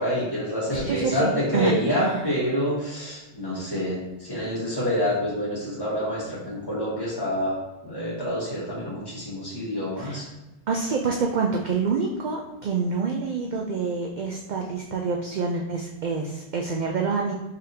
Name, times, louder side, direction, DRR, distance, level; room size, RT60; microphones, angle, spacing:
voice 1, 0.0-7.6 7.8-10.2, equal, 20° left, -8 dB, 1.5 m, -27 dB
voice 2, 0.7-2.3 10.0-10.3 10.7-17.3, right 4 dB, 60° right, 0 dB, 0.5 m, -27 dB
3.8 x 3.5 x 2.7 m, 1.0 s
omnidirectional pair, 1.2 m